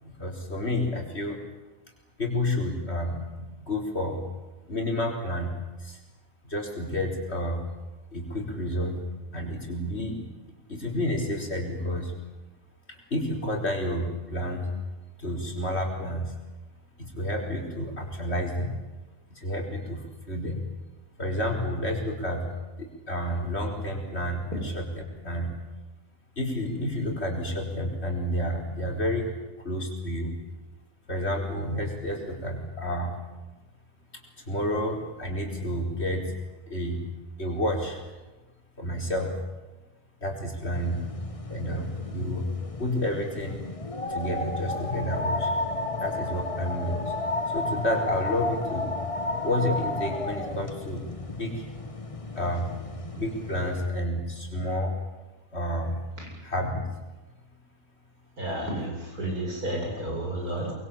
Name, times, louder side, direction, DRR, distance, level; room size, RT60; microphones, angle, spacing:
voice 1, 0.0-1.4 2.2-4.2 4.7-5.5 5.8-6.0 6.5-7.6 8.1-9.0 9.3-10.2 10.7-12.1 12.9-14.7 15.2-16.3 17.0-18.8 19.3-20.7 21.2-22.4 22.8-25.6 26.4-29.4 29.6-30.3 31.1-33.1 34.5-36.3 36.7-37.0 37.4-38.0 38.8-39.4 40.2-41.0 41.5-42.5 42.8-43.7 44.1-45.5 46.0-47.1 47.5-48.9 49.4-51.6 52.3-52.7 53.1-54.9 55.5-56.0 56.4-56.8, left 1 dB, 45° left, 2 dB, 5.0 m, -30 dB
sound 1, 40.7-53.9, left 2 dB, 25° left, 1.4 m, -33 dB
voice 2, 58.4-60.7, right 1 dB, 80° right, -1 dB, 8.8 m, -31 dB
24.5 x 22.5 x 8.8 m, 1.1 s
omnidirectional pair, 1.6 m